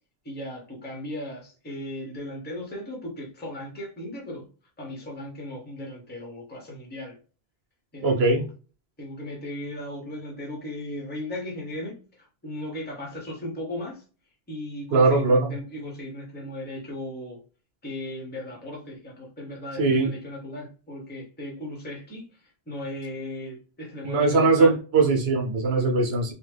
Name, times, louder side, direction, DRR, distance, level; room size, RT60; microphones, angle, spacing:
voice 1, 0.2-4.5 4.8-7.2 7.9-8.4 9.0-14.0 14.5-17.4 17.8-22.3 22.7-24.8, left 1 dB, 10° left, 0.8 m, -37 dB
voice 2, 8.0-8.4 14.9-15.5 19.8-20.1 24.0-26.3, right 3 dB, 75° right, 1.0 m, -20 dB
3.2 x 2.1 x 3.3 m
omnidirectional pair, 1.1 m